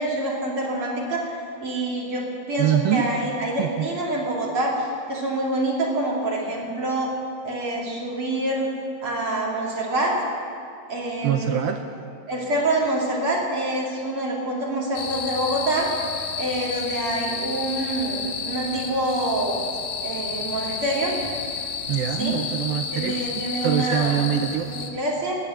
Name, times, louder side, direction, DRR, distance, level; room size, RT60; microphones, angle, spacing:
voice 1, 0.0-7.1 7.4-8.7 9.0-10.1 10.9-11.6 12.3-15.9 16.4-19.6 20.0-21.1 22.2-22.3 22.9-24.1 24.6-25.4, right 1 dB, 35° right, -4 dB, 3.0 m, -26 dB
voice 2, 2.6-3.0 3.6-3.9 11.2-11.8 21.9-24.7, right 10 dB, 85° right, 5 dB, 2.2 m, -24 dB
sound 1, 14.9-24.9, left 5 dB, 75° left, 1.4 m, -31 dB
20.0 x 8.5 x 7.6 m, 2.4 s
omnidirectional pair, 4.9 m